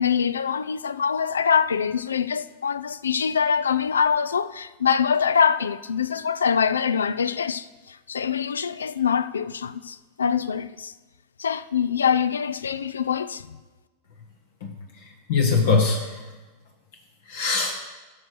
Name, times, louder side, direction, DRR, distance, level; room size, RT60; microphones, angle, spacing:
voice 1, 0.0-10.9 11.4-13.6, left 7 dB, 80° left, 0.4 m, -24 dB
voice 2, 14.6-16.3 17.3-17.8, left 4 dB, 65° left, 1.3 m, -23 dB
12.5 x 6.2 x 4.7 m
hypercardioid pair, 95°, 0 cm